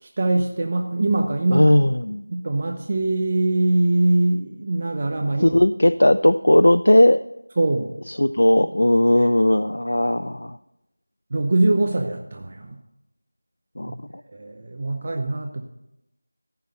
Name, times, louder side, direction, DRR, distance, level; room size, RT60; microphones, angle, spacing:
voice 1, 0.0-1.6 2.3-5.6 7.6-8.0 9.1-9.3 11.3-12.8 14.3-15.6, right 2 dB, 25° right, 3 dB, 0.7 m, -22 dB
voice 2, 1.5-2.2 5.4-7.2 8.2-10.6 13.8-13.9, left 1 dB, 85° left, 10 dB, 0.4 m, -17 dB
14.0 x 5.9 x 6.6 m, 0.89 s
figure-of-eight pair, 175°, 0 cm